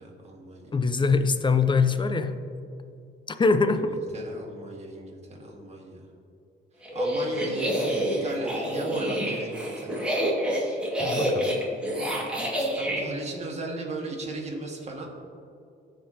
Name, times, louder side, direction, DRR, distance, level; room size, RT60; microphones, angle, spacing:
voice 1, 0.0-0.7 3.7-6.0 6.9-7.8 8.1-10.1 12.6-15.1, right 2 dB, 35° right, -1 dB, 2.0 m, -36 dB
voice 2, 0.7-2.3 3.4-4.0 11.0-11.5, left 4 dB, 25° left, 9 dB, 0.6 m, -23 dB
sound 1, 6.8-13.0, equal, 5° right, 2.1 m, -28 dB
15.5 x 5.3 x 2.9 m, 2.5 s
cardioid pair, 90°, 20 cm